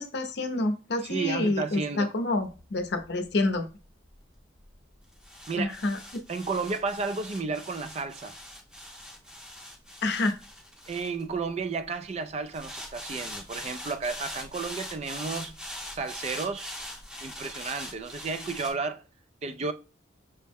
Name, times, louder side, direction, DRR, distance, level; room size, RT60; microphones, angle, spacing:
voice 1, 0.0-3.7 5.6-6.0 10.0-10.4, left 2 dB, 60° left, 0.6 m, -28 dB
voice 2, 1.0-2.1 5.5-5.8 6.3-8.4 10.9-15.6 15.9-16.8 17.2-19.0 19.4-19.7, right 4 dB, 35° right, 0.3 m, -32 dB
sound 1, 2.4-11.8 12.5-18.7, equal, 5° right, 0.7 m, -42 dB
5.5 x 2.1 x 3.4 m
head